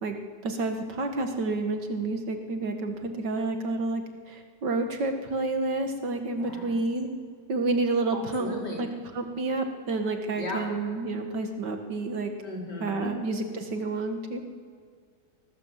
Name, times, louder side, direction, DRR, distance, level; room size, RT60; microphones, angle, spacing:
voice 1, 0.4-4.0 4.3-7.1 7.5-8.9 9.1-12.3 12.8-14.4, right 3 dB, 90° right, 5 dB, 2.4 m, -29 dB
voice 2, 6.4-6.8 8.4-8.8 10.4-10.6 12.4-13.1, left 2 dB, 80° left, -2 dB, 5.2 m, -35 dB
21.0 x 19.0 x 7.6 m, 2.1 s
omnidirectional pair, 1.8 m